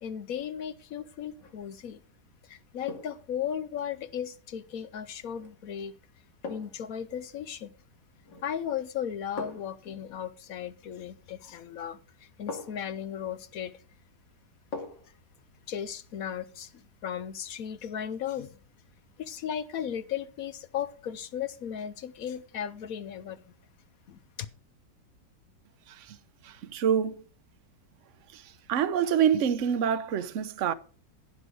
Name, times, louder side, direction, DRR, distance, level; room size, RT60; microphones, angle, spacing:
voice 1, 0.0-2.0 2.4-5.9 6.5-7.7 8.4-13.8 15.7-18.6 19.2-23.4 24.1-24.2, left 9 dB, 65° left, 1.0 m, -36 dB
sound 1, 1.3-1.6 2.9-3.3 5.4-5.6 6.4-6.9 8.2-8.6 9.4-9.8 11.5-11.6 12.5-12.9 14.7-15.2 15.5-15.6, left 3 dB, 85° left, 3.1 m, -41 dB
voice 2, 25.9-26.2 26.4-27.2 28.3-30.7, right 8 dB, 55° right, 0.9 m, -27 dB
15.5 x 6.2 x 5.0 m
omnidirectional pair, 1.9 m